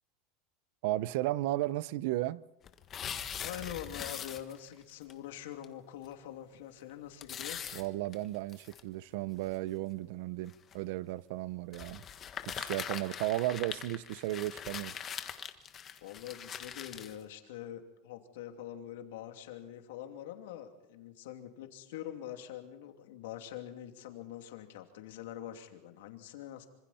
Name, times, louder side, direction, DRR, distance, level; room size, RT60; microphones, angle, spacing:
voice 1, 0.8-2.4 7.7-12.0 12.5-15.1, right 16 dB, 65° right, 0.7 m, -34 dB
sound 1, 2.6-4.8 5.1-5.2 5.6-5.7 6.1-6.2 7.2-8.8 9.5-9.6 10.5-10.8 11.7-17.2, left 8 dB, 25° left, 1.4 m, -42 dB
voice 2, 3.4-7.6 13.1-13.2 16.0-26.7, left 11 dB, 85° left, 2.8 m, -44 dB
26.5 x 26.0 x 4.4 m
supercardioid pair, 160°, 0 cm